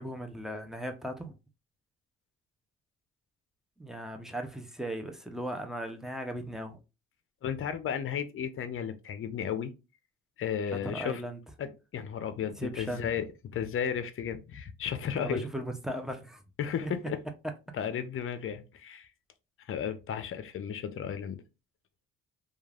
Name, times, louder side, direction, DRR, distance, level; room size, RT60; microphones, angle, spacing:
voice 1, 0.0-1.3 3.8-6.8 10.7-11.4 12.6-13.1 15.2-16.4 16.8-16.9, right 1 dB, ahead, 0.6 m, -37 dB
voice 2, 7.4-9.7 10.4-11.2 11.6-13.2 13.5-15.4 16.6-17.2 17.7-19.1 19.7-21.4, left 8 dB, 45° left, 0.6 m, -34 dB
3.1 x 2.4 x 2.4 m
cardioid pair, 90°, 30 cm